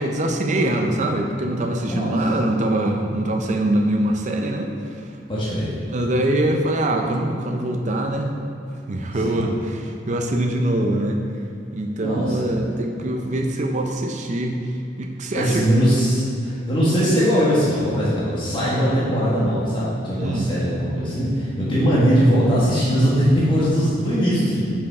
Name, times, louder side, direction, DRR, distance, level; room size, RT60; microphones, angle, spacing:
voice 1, 0.0-5.0 5.9-8.4 8.9-11.2 11.7-14.5 15.0-15.6 20.2-20.5, right 1 dB, 45° right, 3 dB, 0.5 m, -23 dB
voice 2, 5.3-5.8 9.2-9.4 12.0-12.6 15.3-24.7, equal, 30° left, -9 dB, 1.5 m, -20 dB
5.5 x 5.3 x 4.8 m, 2.5 s
head